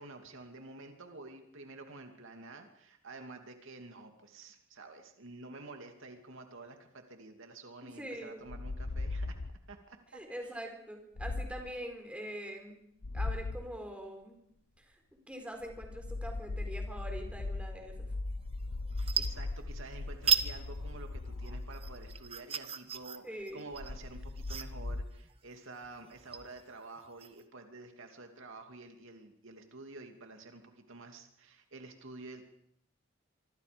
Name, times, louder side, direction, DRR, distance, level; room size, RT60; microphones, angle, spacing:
voice 1, 0.0-9.4 9.7-10.2 19.0-32.4, right 3 dB, 65° right, 5 dB, 2.6 m, -49 dB
voice 2, 7.8-8.5 10.1-12.8 13.1-14.4 14.8-15.0 15.3-18.1 23.2-23.7, equal, 5° right, 3 dB, 4.4 m, -43 dB
sound 1, 8.5-9.7 11.2-11.8 13.0-13.7 15.6-22.4 23.7-25.1, left 2 dB, 80° left, 1.0 m, -38 dB
sound 2, 18.4-18.6 18.9-19.9 20.2-20.5 20.9-27.4, right 7 dB, 30° right, 1.1 m, -35 dB
25.5 x 25.0 x 5.2 m, 0.73 s
head